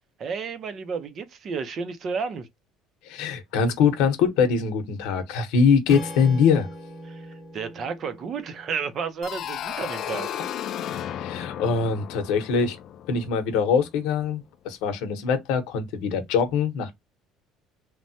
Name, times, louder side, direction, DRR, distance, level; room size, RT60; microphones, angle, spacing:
voice 1, 0.2-2.5 7.1-10.3, right 5 dB, 40° right, 0.5 m, -32 dB
voice 2, 3.0-6.7 11.2-12.8 13.1-16.9, left 6 dB, 80° left, 0.8 m, -23 dB
Strum, 5.9-10.1, right 1 dB, 10° left, 1.0 m, -40 dB
sound 1, 9.2-13.9, left 10 dB, 50° left, 0.3 m, -34 dB
3.1 x 2.1 x 2.7 m
cardioid pair, 145°, 0 cm